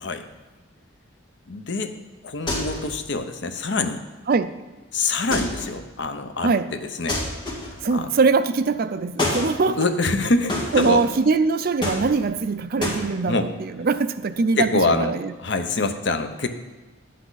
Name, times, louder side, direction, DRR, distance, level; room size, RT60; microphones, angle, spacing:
voice 1, 1.5-2.0 2.2-4.0 4.9-7.2 7.9-8.1 9.8-11.0 13.2-13.5 14.6-15.1 15.4-16.5, left 3 dB, 60° left, 8 dB, 0.8 m, -25 dB
sound 1, 2.5-3.0 5.3-5.8 7.1-7.9 9.2-9.5 10.5-11.1 11.8-12.4 12.8-13.0, left 1 dB, 25° left, 2.0 m, -27 dB
voice 2, 7.8-9.8 10.7-15.3, right 4 dB, 50° right, 12 dB, 0.4 m, -22 dB
11.0 x 8.4 x 4.0 m, 1.3 s
head